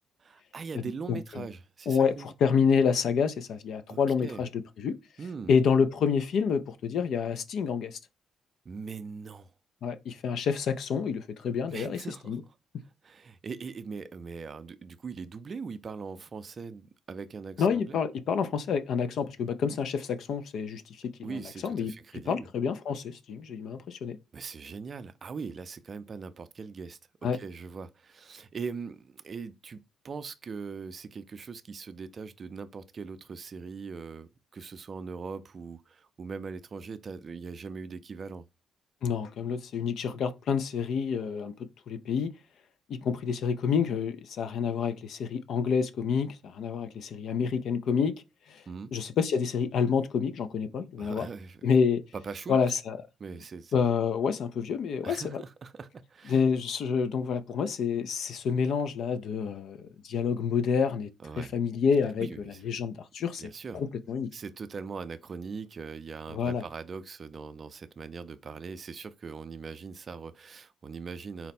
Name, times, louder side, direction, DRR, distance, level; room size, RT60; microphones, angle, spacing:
voice 1, 0.2-2.3 3.9-4.4 5.2-5.5 8.7-9.5 11.7-12.4 13.0-18.0 21.2-22.5 24.3-27.0 27.3-38.4 48.7-48.9 51.0-51.6 52.1-52.6 53.2-53.8 55.0-56.4 61.2-61.5 62.2-62.6 63.4-63.8 64.3-71.5, right 5 dB, 40° right, 0.4 m, -41 dB
voice 2, 1.1-1.5 1.9-5.0 5.5-8.0 9.8-12.0 12.3-12.4 17.6-21.9 22.3-24.2 27.2-27.4 39.0-42.3 42.9-48.2 48.5-48.6 48.9-51.3 51.6-52.0 52.5-53.0 53.7-55.4 56.3-61.1 61.4-63.5 63.7-64.3 66.3-66.6, left 6 dB, 70° left, 0.5 m, -28 dB
4.1 x 2.1 x 4.1 m
cardioid pair, 90°, 0 cm